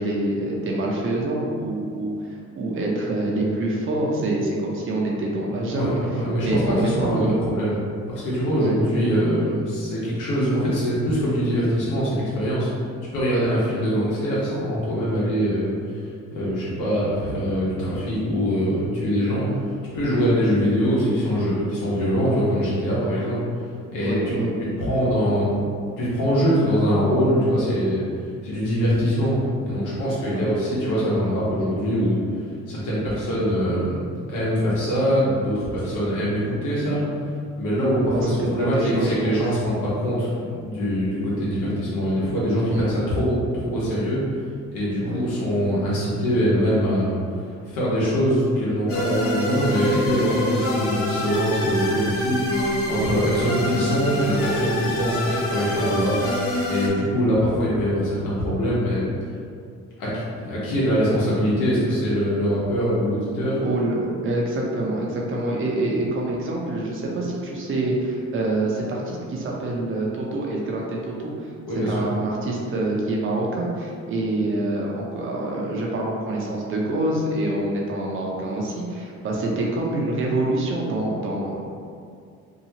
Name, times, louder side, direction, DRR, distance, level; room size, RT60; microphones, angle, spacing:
voice 1, 0.0-2.3 2.5-5.9 6.4-7.4 8.6-8.8 13.5-13.6 24.0-24.5 30.3-30.5 38.1-39.4 42.7-42.9 45.0-45.2 52.9-53.2 63.6-71.5 71.9-81.7, right 2 dB, 45° right, -2 dB, 0.6 m, -26 dB
voice 2, 5.6-7.8 8.1-12.7 13.1-15.7 16.3-19.5 19.9-23.4 23.9-25.6 26.0-28.1 28.4-29.3 29.6-32.2 32.7-34.0 34.3-37.0 37.6-44.2 44.7-47.2 47.7-56.1 56.7-59.0 60.0-63.6 71.6-72.0, equal, 90° left, -8 dB, 1.1 m, -23 dB
sound 1, 48.9-56.9, left 1 dB, 50° left, 0.6 m, -26 dB
2.8 x 2.3 x 2.8 m, 2.3 s
cardioid pair, 90°, 30 cm